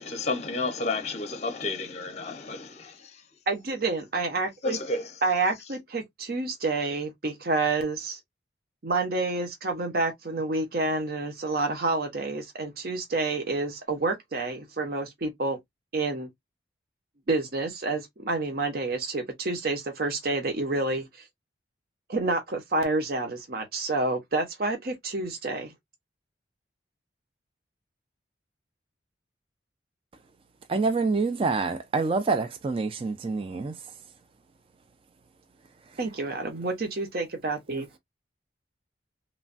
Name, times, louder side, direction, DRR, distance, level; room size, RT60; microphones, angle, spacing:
voice 1, 0.0-3.1 4.6-5.1, left 3 dB, 35° left, 0.6 m, -31 dB
voice 2, 3.5-4.8 5.2-8.2 8.8-15.6 15.9-16.3 17.3-21.1 22.1-25.7 36.0-37.9, right 3 dB, 55° right, 0.7 m, -28 dB
voice 3, 30.7-33.8 37.7-38.0, right 4 dB, 30° right, 0.3 m, -27 dB
3.1 x 2.2 x 2.4 m
head